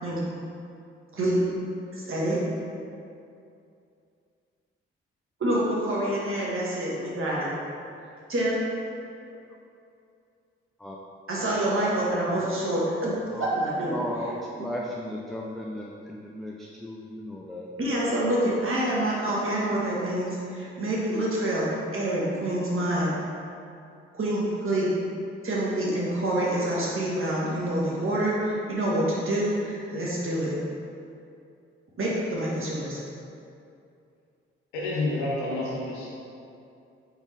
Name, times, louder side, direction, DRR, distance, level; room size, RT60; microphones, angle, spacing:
voice 1, 1.1-1.5 1.9-2.4 5.4-7.5 8.3-8.6 11.3-13.1 13.5-14.0 17.8-21.7 21.9-23.1 24.1-24.9 25.4-30.5 32.0-33.0, right 1 dB, 45° right, -6 dB, 1.3 m, -27 dB
voice 2, 13.9-17.7, left 1 dB, ahead, -2 dB, 0.4 m, -35 dB
voice 3, 34.7-36.1, left 2 dB, 90° left, -5 dB, 0.8 m, -29 dB
3.8 x 3.5 x 3.2 m, 2.5 s
hypercardioid pair, 40°, 29 cm